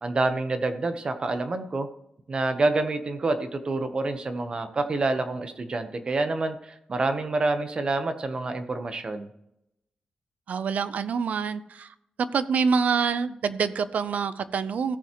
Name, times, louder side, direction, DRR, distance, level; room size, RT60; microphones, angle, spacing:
voice 1, 0.0-1.9 2.3-9.3, right 2 dB, 35° right, 1.0 m, -27 dB
voice 2, 10.5-11.9 12.3-15.0, right 6 dB, 65° right, 0.7 m, -26 dB
17.0 x 7.0 x 3.1 m
wide cardioid pair, 140°, 3 cm